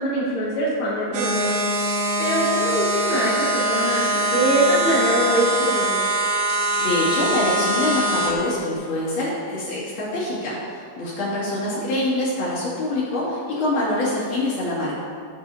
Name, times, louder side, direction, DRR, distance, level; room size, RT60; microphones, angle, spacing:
voice 1, 0.0-1.6 2.2-6.0 11.7-11.8, equal, 40° left, -9 dB, 2.4 m, -23 dB
sound 1, 1.1-8.3, right 1 dB, 85° right, 2.8 m, -23 dB
voice 2, 6.6-15.0, left 1 dB, 55° left, -8 dB, 3.6 m, -25 dB
14.0 x 7.4 x 2.8 m, 2.2 s
omnidirectional pair, 4.4 m